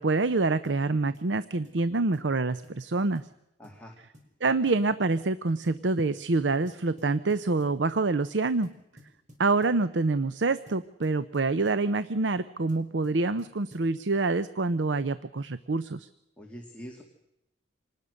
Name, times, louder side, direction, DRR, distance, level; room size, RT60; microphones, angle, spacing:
voice 1, 0.0-3.2 4.4-8.7 9.4-16.1, right 3 dB, 80° right, 14 dB, 0.7 m, -26 dB
sound 1, 0.6-0.8 1.1-1.3 1.6-1.9 2.1-2.3 2.6-2.8 3.1-3.3 3.6-3.8 4.1-4.3 4.7-4.9 5.2-5.3 5.6-5.8 6.2-6.4 6.7-7.8 8.6-9.8 10.7-11.9 12.7-13.9, equal, 45° right, 5.7 m, -54 dB
voice 2, 3.6-4.0 16.4-17.0, equal, 5° left, 0 dB, 2.3 m, -44 dB
26.5 x 19.5 x 6.5 m, 0.88 s
head